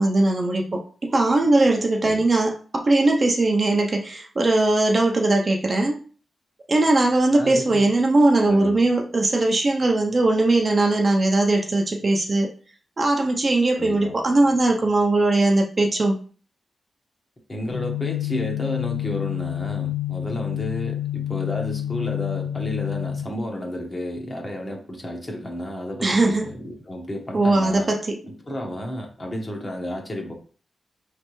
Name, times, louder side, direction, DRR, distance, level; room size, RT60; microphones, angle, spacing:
voice 1, 0.0-6.0 6.7-12.5 13.0-16.2 26.0-26.5 27.3-28.2, right 2 dB, 30° right, 1 dB, 0.5 m, -20 dB
voice 2, 7.3-7.9 8.5-8.7 13.8-14.1 17.5-27.9 28.3-30.3, left 1 dB, 25° left, 1 dB, 0.9 m, -32 dB
sound 1, 17.7-23.2, left 12 dB, 70° left, 0.8 m, -28 dB
4.9 x 3.3 x 3.1 m, 0.40 s
wide cardioid pair, 180°, 0 cm